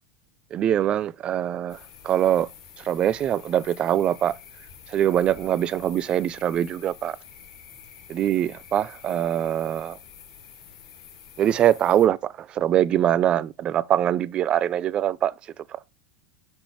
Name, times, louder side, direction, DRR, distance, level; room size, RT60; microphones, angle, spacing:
voice 1, 0.5-1.8 2.0-2.5 2.9-4.4 4.9-7.2 8.1-10.0 11.4-15.3, right 11 dB, 35° right, 0.4 m, -23 dB
sound 1, 1.7-12.1, left 7 dB, 65° left, 2.7 m, -47 dB
6.1 x 5.5 x 3.2 m
hypercardioid pair, 95°, 3 cm